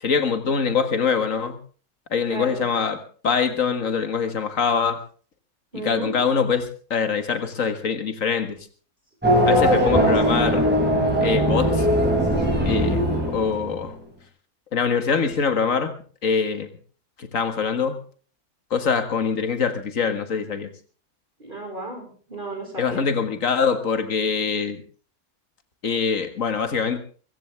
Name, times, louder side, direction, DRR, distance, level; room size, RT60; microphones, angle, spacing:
voice 1, 0.0-1.6 2.1-5.0 5.7-8.6 9.5-10.7 11.2-11.9 12.6-13.0 13.3-13.9 14.7-16.0 16.2-16.7 17.2-18.0 18.7-20.7 22.8-24.8 25.8-27.0, left 6 dB, 60° left, 9 dB, 2.1 m, -24 dB
voice 2, 2.3-2.7 5.7-6.1 9.4-10.6 21.4-23.1, left 1 dB, 30° right, 1 dB, 5.0 m, -29 dB
Race car auto racing / Accelerating revving vroom, 9.2-13.9, equal, 5° right, 6.6 m, -20 dB
22.5 x 16.0 x 3.4 m, 0.41 s
omnidirectional pair, 1.6 m